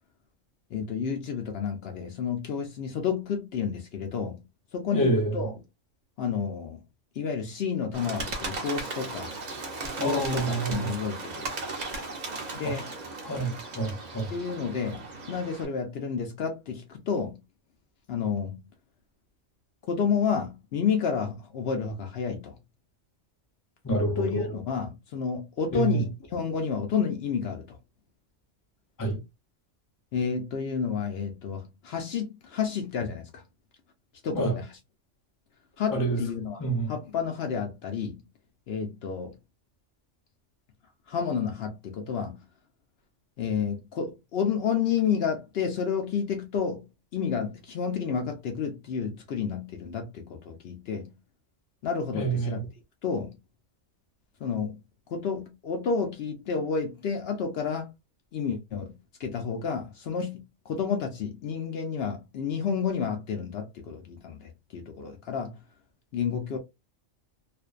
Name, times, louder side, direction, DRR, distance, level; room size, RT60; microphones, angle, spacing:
voice 1, 0.7-4.4 4.7-5.5 6.2-6.8 7.2-9.3 10.0-11.7 12.5-12.9 14.3-17.4 18.1-18.7 19.9-22.6 24.2-27.8 30.1-33.4 34.2-34.7 35.8-36.6 36.9-38.3 38.7-39.3 41.1-42.4 43.4-46.8 47.1-51.2 51.8-52.6 53.0-53.4 54.4-54.8 55.1-57.9 58.3-65.6 66.1-66.6, left 6 dB, 65° left, 0.7 m, -30 dB
voice 2, 4.9-5.5 10.0-11.0 12.6-12.9 13.2-14.3 23.8-24.6 25.7-26.0 29.0-29.2 34.3-34.6 35.9-36.2 36.6-36.9 52.1-52.6, right 2 dB, 25° left, 0.4 m, -28 dB
Bird, 7.9-15.7, right 3 dB, 45° right, 0.6 m, -37 dB
2.5 x 2.1 x 2.3 m
omnidirectional pair, 1.3 m